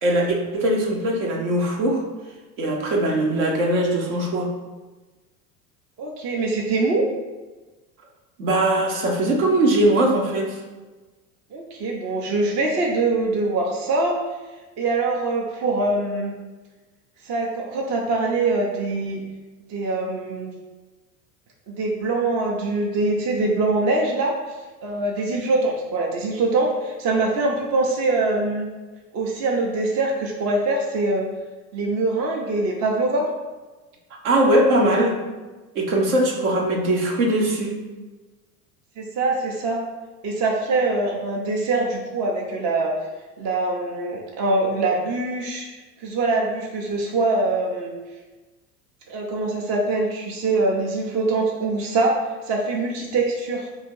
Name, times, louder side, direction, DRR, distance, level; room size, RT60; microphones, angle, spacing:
voice 1, 0.0-2.0 2.6-4.5 8.4-10.6 34.2-35.2 35.7-37.8, right 1 dB, 60° right, 1 dB, 1.0 m, -20 dB
voice 2, 6.0-7.0 11.5-14.2 14.8-16.3 17.2-19.2 19.7-20.5 21.7-24.4 24.8-28.7 29.1-31.3 31.7-33.3 39.0-39.8 40.2-42.9 43.4-45.7 46.0-47.9 49.1-52.2 52.4-53.7, right 2 dB, 35° right, 0 dB, 0.7 m, -23 dB
3.3 x 2.7 x 4.6 m, 1.2 s
hypercardioid pair, 80°, 47 cm